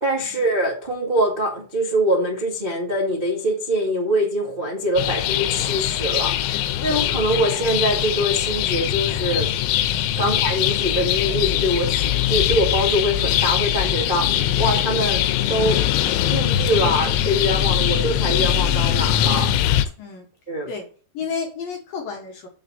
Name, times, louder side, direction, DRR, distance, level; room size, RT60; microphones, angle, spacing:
voice 1, 0.0-9.5 10.2-15.2 15.5-15.8 16.2-19.5 20.5-20.7, equal, 75° right, -5 dB, 0.5 m, -23 dB
sound 1, 5.0-19.9, left 11 dB, 85° left, 3.0 m, -22 dB
voice 2, 21.1-22.5, left 5 dB, 65° left, 0 dB, 2.4 m, -32 dB
7.7 x 4.1 x 6.5 m, 0.41 s
omnidirectional pair, 5.4 m